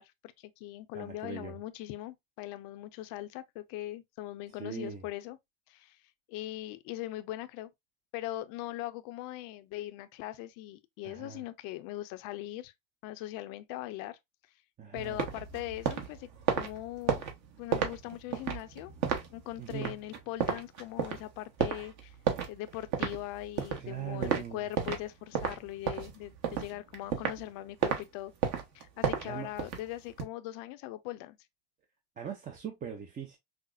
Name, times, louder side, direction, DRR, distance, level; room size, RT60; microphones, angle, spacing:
voice 1, 0.0-5.4 5.7-6.0 6.3-7.7 8.1-12.7 13.0-14.2 14.9-17.2 17.6-18.9 19.3-22.1 22.5-28.3 28.7-31.4, left 15 dB, 65° left, 0.6 m, -40 dB
voice 2, 0.9-1.6 4.5-5.1 11.0-11.4 14.8-15.2 19.6-19.9 23.8-24.6 29.2-29.5 32.2-33.4, right 9 dB, 25° right, 0.5 m, -40 dB
sound 1, 15.0-25.1 25.3-27.5 27.8-28.0 28.4-30.2, right 7 dB, 50° right, 1.1 m, -33 dB
5.7 x 2.0 x 2.4 m
cardioid pair, 130°, 36 cm